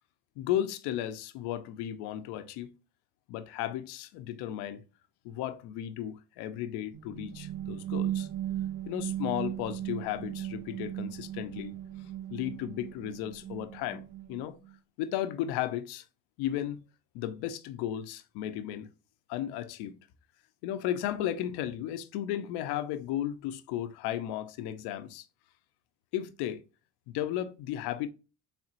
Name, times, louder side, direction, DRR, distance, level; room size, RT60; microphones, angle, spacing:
voice 1, 0.4-2.7 3.3-4.8 5.2-8.3 8.9-11.8 12.3-14.0 14.3-14.6 15.0-16.0 16.4-16.8 17.1-18.9 19.3-20.0 20.6-25.3 26.1-26.6 27.1-28.1, left 11 dB, 85° left, 0.6 m, -34 dB
sound 1, 6.9-14.7, right 12 dB, 85° right, 1.1 m, -37 dB
4.3 x 3.5 x 2.5 m
cardioid pair, 125°, 39 cm